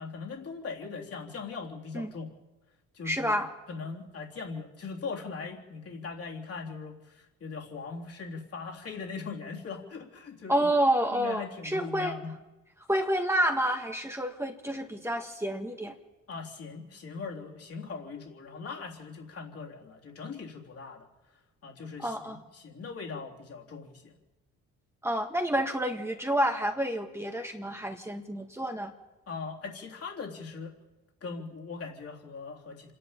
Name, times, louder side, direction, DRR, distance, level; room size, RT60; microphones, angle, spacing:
voice 1, 0.0-2.3 2.9-3.4 3.7-10.7 11.1-12.3 16.3-21.1 21.6-24.2 29.3-30.7 31.2-32.9, left 4 dB, 50° left, 0 dB, 3.6 m, -40 dB
voice 2, 3.0-3.5 10.5-12.1 12.9-15.9 22.0-22.4 25.0-28.9, right 1 dB, 10° right, 3 dB, 1.7 m, -29 dB
26.5 x 11.0 x 9.0 m, 1.1 s
cardioid pair, 90°, 30 cm